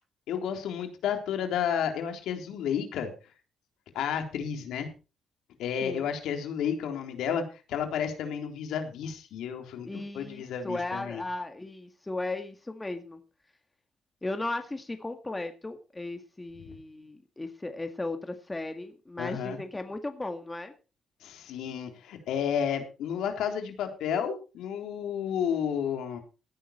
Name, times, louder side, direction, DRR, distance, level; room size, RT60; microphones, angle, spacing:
voice 1, 0.3-3.1 3.9-4.9 5.6-9.9 10.1-11.2 16.7-16.8 19.2-19.6 21.2-26.2, left 8 dB, 85° left, 5 dB, 3.6 m, -31 dB
voice 2, 9.9-13.2 14.2-20.7, left 2 dB, 15° left, 7 dB, 1.9 m, -36 dB
17.0 x 10.0 x 4.4 m, 0.33 s
cardioid pair, 90°, 0 cm